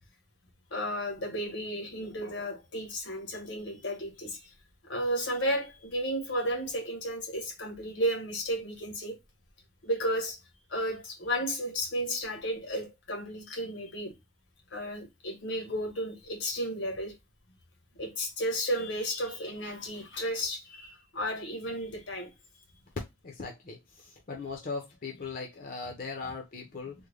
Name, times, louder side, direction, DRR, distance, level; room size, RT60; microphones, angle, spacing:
voice 1, 0.7-4.5 4.8-9.2 9.8-10.4 10.7-14.1 14.7-17.2 17.9-22.3, equal, 80° left, 1.2 m, -33 dB
voice 2, 23.2-26.9, left 4 dB, 45° left, 0.6 m, -39 dB
3.6 x 2.1 x 3.2 m
head